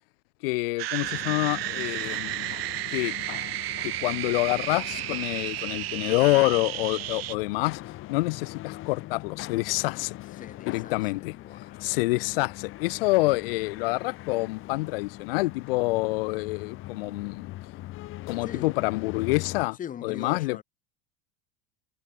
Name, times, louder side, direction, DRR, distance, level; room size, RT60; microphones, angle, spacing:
voice 1, 0.4-2.5 2.9-3.1 3.8-7.8 8.1-10.2 10.6-11.4 11.8-17.5 18.3-19.8 20.0-20.6, left 23 dB, 70° left, 0.6 m, -27 dB
sound 1, 0.8-7.3, right 17 dB, 80° right, 1.9 m, -33 dB
sound 2, 1.0-19.7, left 16 dB, 45° left, 7.8 m, -41 dB
voice 2, 10.4-12.0 18.3-18.8 19.8-20.6, left 9 dB, 25° left, 4.6 m, -41 dB
supercardioid pair, 135°, 29 cm